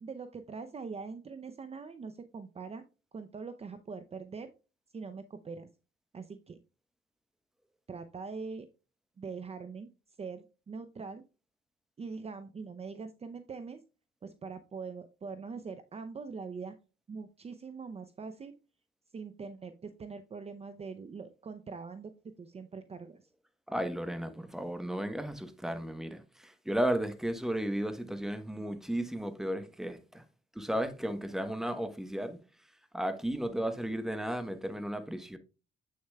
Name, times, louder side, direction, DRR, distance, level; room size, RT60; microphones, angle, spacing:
voice 1, 0.0-2.8 3.1-4.5 4.9-5.7 6.1-6.6 7.9-8.7 9.2-9.9 10.2-11.2 12.0-13.8 14.2-16.8 17.1-18.5 19.1-22.1 22.4-23.2, right 5 dB, 30° right, 0.6 m, -42 dB
voice 2, 23.7-30.2 30.5-32.4 32.9-35.4, right 1 dB, ahead, 1.0 m, -34 dB
7.9 x 6.5 x 2.3 m
cardioid pair, 90°, 20 cm